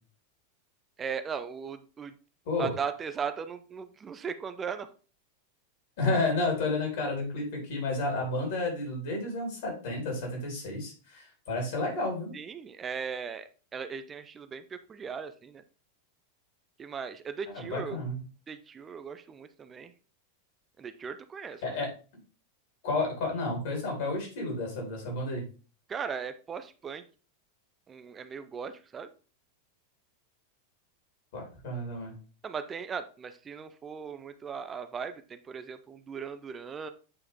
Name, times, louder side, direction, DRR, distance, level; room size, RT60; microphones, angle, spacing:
voice 1, 1.0-2.1 2.6-4.9 12.3-15.6 16.8-18.0 18.5-19.9 20.8-21.6 25.9-27.0 27.9-29.1 32.4-36.9, right 6 dB, 20° right, 10 dB, 0.6 m, -38 dB
voice 2, 6.0-12.3 17.5-18.2 21.6-21.9 22.8-25.4 31.3-32.1, left 2 dB, 55° left, 1 dB, 4.0 m, -31 dB
8.6 x 4.8 x 3.5 m, 0.36 s
figure-of-eight pair, 90°, 0 cm